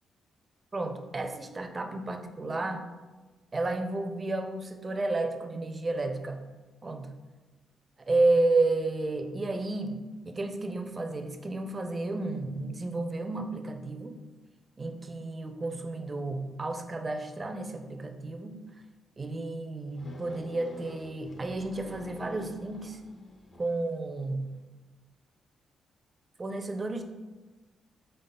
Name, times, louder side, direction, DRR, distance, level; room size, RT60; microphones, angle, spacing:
voice 1, 0.7-2.9 3.5-6.4 6.8-7.1 8.0-10.0 10.2-14.2 14.8-18.6 19.2-23.0 23.6-24.5 26.4-27.0, right 2 dB, 30° right, 6 dB, 0.4 m, -31 dB
sound 1, 19.9-24.0, left 2 dB, 45° left, 0.6 m, -48 dB
5.4 x 3.5 x 2.2 m, 1.2 s
cardioid pair, 80°, 0 cm